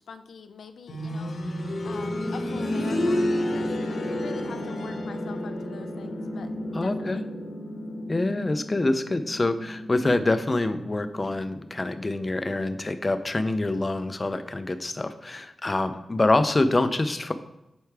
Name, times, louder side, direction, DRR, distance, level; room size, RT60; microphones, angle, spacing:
voice 1, 0.0-1.4 1.8-7.3, left 5 dB, 80° left, 9 dB, 0.5 m, -44 dB
sound 1, 0.9-11.6 11.9-12.0 12.9-13.0, left 1 dB, 60° left, 1.1 m, -31 dB
voice 2, 6.7-7.2 8.1-17.3, left 2 dB, 25° left, 10 dB, 0.4 m, -26 dB
8.1 x 4.6 x 3.3 m, 0.89 s
wide cardioid pair, 160°, 0 cm